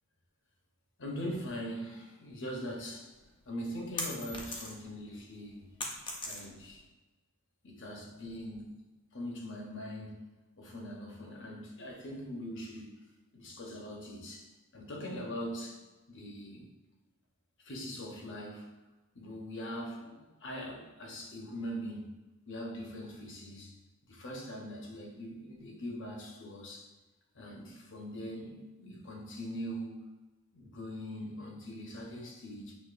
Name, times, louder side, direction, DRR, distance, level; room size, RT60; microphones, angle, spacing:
voice 1, 1.0-3.1 3.5-5.7 6.2-6.8 7.6-8.7 9.1-10.3 10.6-12.9 13.3-15.8 16.1-16.7 17.6-18.7 19.1-22.1 22.5-23.8 24.1-26.9 27.3-30.1 30.5-32.7, equal, 55° left, 0 dB, 0.9 m, -42 dB
sound 1, 3.2-5.0 5.3-6.8, left 2 dB, 20° left, 0.6 m, -39 dB
6.3 x 2.9 x 2.5 m, 1.1 s
head